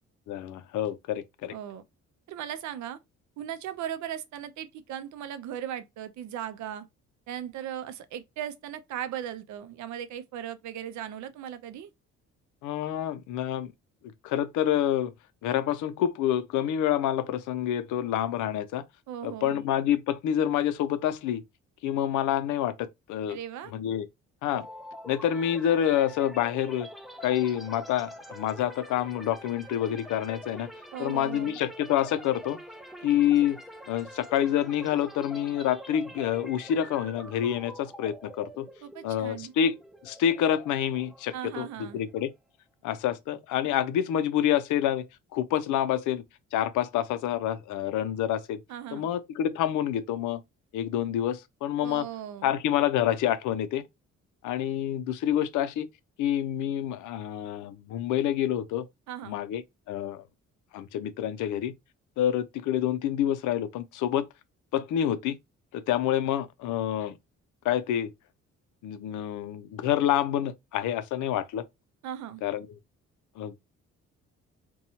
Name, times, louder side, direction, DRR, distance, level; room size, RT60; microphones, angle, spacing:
voice 1, 0.3-1.5 12.6-13.7 14.2-15.1 15.4-18.8 19.2-21.4 21.8-23.4 23.7-24.1 24.4-24.7 25.1-26.9 27.2-30.7 31.0-32.6 33.0-33.6 33.9-38.7 39.0-39.8 40.0-42.3 42.8-45.1 45.3-46.2 46.5-48.6 48.9-50.4 50.7-52.1 52.4-53.8 54.4-55.9 56.2-58.9 59.2-59.6 59.9-60.2 60.7-61.7 62.2-64.3 64.7-65.4 65.7-67.2 67.6-68.1 68.8-71.6 72.4-72.7 73.4-73.5, left 10 dB, 80° left, 0.5 m, -27 dB
voice 2, 1.5-1.8 2.3-3.0 3.4-6.9 7.3-11.9 19.1-19.6 23.3-23.7 30.9-31.6 38.8-39.5 41.3-42.1 48.7-49.1 51.8-52.5 59.1-59.4 72.0-72.4, right 10 dB, 70° right, 0.5 m, -38 dB
sound 1, 24.5-42.3, equal, ahead, 0.4 m, -46 dB
2.7 x 2.2 x 2.7 m
cardioid pair, 90°, 30 cm